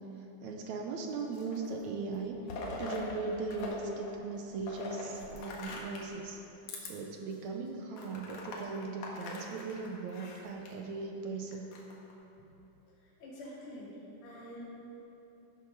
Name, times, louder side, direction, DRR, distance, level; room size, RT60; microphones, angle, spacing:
voice 1, 0.4-2.4 2.8-6.4 6.8-11.7, right 4 dB, 70° right, 2 dB, 2.1 m, -38 dB
sound 1, 1.1-1.8 2.1-3.8 4.0-6.1 6.6-6.9 7.4-7.5 7.9-10.7 11.5-12.1, left 3 dB, 75° left, 3.1 m, -42 dB
voice 2, 13.2-14.7, equal, 40° left, -9 dB, 3.4 m, -46 dB
14.5 x 8.1 x 6.2 m, 3.0 s
omnidirectional pair, 3.7 m